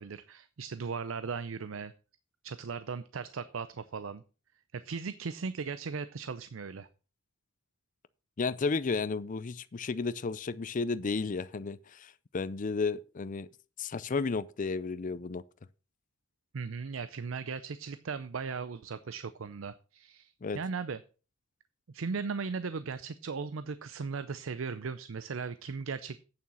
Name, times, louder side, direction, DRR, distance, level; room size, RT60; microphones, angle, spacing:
voice 1, 0.0-1.9 2.4-4.2 4.7-6.9 16.5-21.0 21.9-26.2, right 5 dB, 85° right, 0.6 m, -37 dB
voice 2, 8.4-13.5 13.8-15.4 20.4-20.6, left 4 dB, 40° left, 0.5 m, -33 dB
8.8 x 7.1 x 6.2 m
head